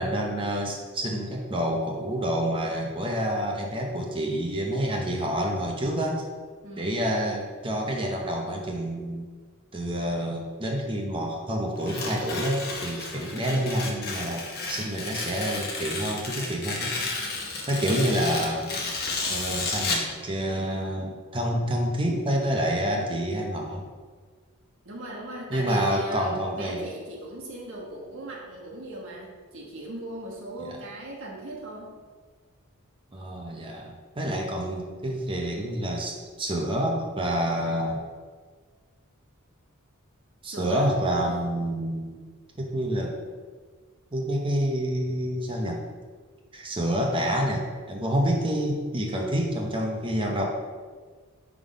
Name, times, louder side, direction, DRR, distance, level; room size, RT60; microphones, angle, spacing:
voice 1, 0.0-6.2 6.8-9.3 9.7-16.9 17.7-18.7 19.3-23.9 25.5-26.9 30.7-30.8 33.1-38.0 40.4-42.3 42.6-43.1 44.1-45.8 46.5-50.4, equal, 25° right, 0 dB, 0.7 m, -28 dB
voice 2, 6.6-6.9 13.3-13.6 17.7-18.0 24.8-31.9 40.4-41.5, right 2 dB, 60° right, -3 dB, 1.4 m, -38 dB
Tearing, 11.8-20.1, left 3 dB, 45° left, 0.9 m, -32 dB
5.5 x 3.6 x 4.9 m, 1.5 s
head